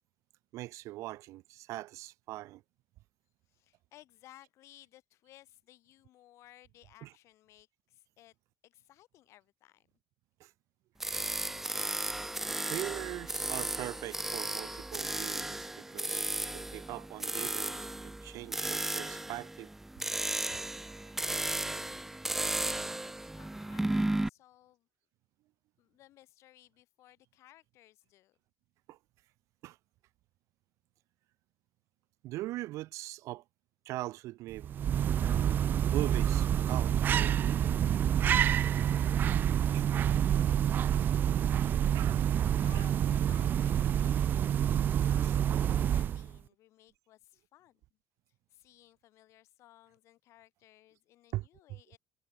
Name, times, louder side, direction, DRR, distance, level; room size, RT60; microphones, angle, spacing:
voice 1, 0.5-2.6 7.0-7.1 10.4-10.5 11.1-11.3 12.6-16.3 16.5-19.7 21.0-21.1 28.9-29.0 29.6-29.8 32.2-33.4 33.9-34.7 35.2-35.6 35.9-37.6 38.6-38.7 39.5-39.8 41.9-42.3 42.7-42.8 44.0-44.1 45.2-45.3 51.3-51.5, right 17 dB, 65° right, 2.4 m, -41 dB
voice 2, 3.5-8.4 8.6-9.9 20.8-22.2 22.8-24.9 25.8-28.4 42.2-47.8 48.5-52.0, left 15 dB, 60° left, 7.2 m, -59 dB
sound 1, 11.0-24.3, right 1 dB, 5° right, 0.7 m, -35 dB
sound 2, 34.5-46.4, right 10 dB, 35° right, 0.3 m, -28 dB
cardioid pair, 150°, 6 cm